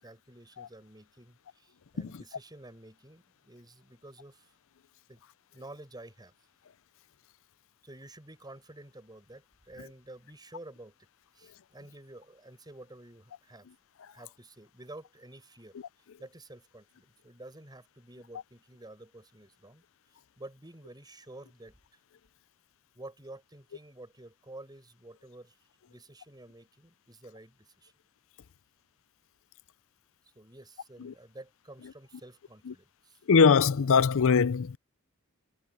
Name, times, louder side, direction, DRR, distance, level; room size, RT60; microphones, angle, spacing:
voice 1, 0.0-4.5 5.1-5.2 5.5-6.3 7.8-10.9 11.3-13.7 14.1-15.8 16.2-19.8 20.4-21.8 23.0-25.5 25.9-27.9 30.4-33.2, right 2 dB, 20° right, 7.2 m, -50 dB
voice 2, 33.3-34.8, left 5 dB, 65° left, 0.5 m, -21 dB
head